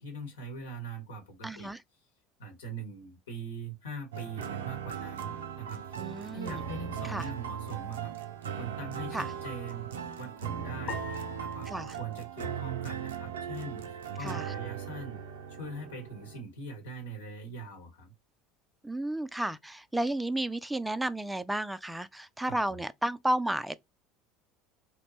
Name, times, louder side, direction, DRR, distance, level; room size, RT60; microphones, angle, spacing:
voice 1, 0.0-1.7 2.4-5.8 6.3-8.1 8.6-9.9 10.2-15.2 15.6-18.1 22.5-22.7, right 2 dB, 75° left, 1.2 m, -42 dB
voice 2, 1.4-1.8 6.0-6.6 7.1-7.2 9.1-9.3 11.7-12.0 14.2-14.5 18.8-23.8, right 1 dB, 5° right, 0.3 m, -32 dB
sound 1, 4.1-16.4, right 8 dB, 75° right, 0.5 m, -38 dB
sound 2, 10.9-13.3, left 6 dB, 50° left, 0.6 m, -45 dB
2.9 x 2.1 x 4.0 m
figure-of-eight pair, 70°, 0 cm